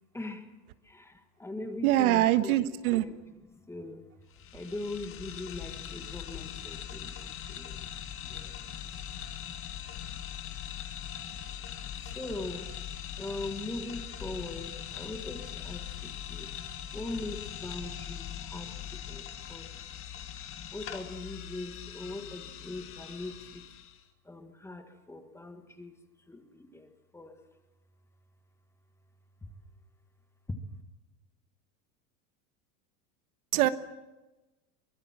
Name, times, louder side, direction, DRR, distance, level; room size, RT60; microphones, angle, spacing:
voice 1, 0.1-0.5 0.8-4.0 4.5-7.9 8.2-8.6 12.0-12.7 13.2-16.5 16.9-19.7 20.7-23.6 24.3-26.0 26.3-27.4 29.4-29.5 30.5-30.6, left 2 dB, 5° left, 7 dB, 1.7 m, -41 dB
voice 2, 1.8-3.0 33.5-33.7, right 15 dB, 65° right, 12 dB, 1.5 m, -23 dB
sound 1, 4.3-24.0, left 9 dB, 25° left, 1.8 m, -41 dB
23.5 x 20.5 x 7.5 m, 1.0 s
supercardioid pair, 165°, 47 cm